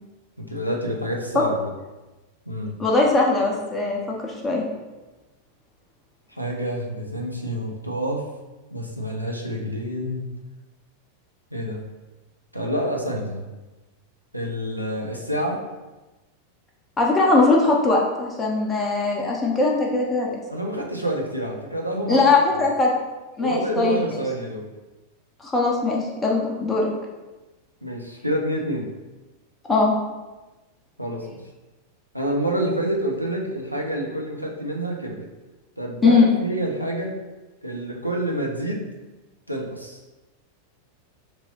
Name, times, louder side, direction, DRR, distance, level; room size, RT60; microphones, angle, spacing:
voice 1, 0.4-1.7 2.5-2.8 6.3-8.3 8.7-10.3 11.5-11.8 12.5-13.5 14.3-15.7 20.5-22.2 23.4-24.7 27.8-28.9 31.0-31.4 32.1-35.3 35.8-37.2 37.6-38.9 39.5-40.0, right 1 dB, 90° right, -1 dB, 0.4 m, -28 dB
voice 2, 2.8-4.6 17.0-20.3 22.1-22.9 23.4-24.0 25.4-26.9 29.7-29.9 36.0-36.3, left 3 dB, 15° left, -2 dB, 0.4 m, -20 dB
3.0 x 2.7 x 2.8 m, 1.1 s
figure-of-eight pair, 90°, 0 cm